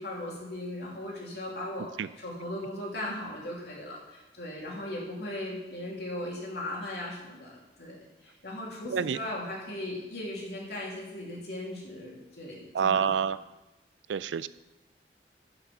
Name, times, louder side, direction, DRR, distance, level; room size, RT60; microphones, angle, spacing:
voice 1, 0.0-13.2, left 1 dB, 65° left, -3 dB, 3.0 m, -38 dB
voice 2, 12.7-13.4 14.1-14.5, right 7 dB, 85° right, 17 dB, 0.4 m, -27 dB
11.5 x 5.9 x 5.5 m, 1.0 s
head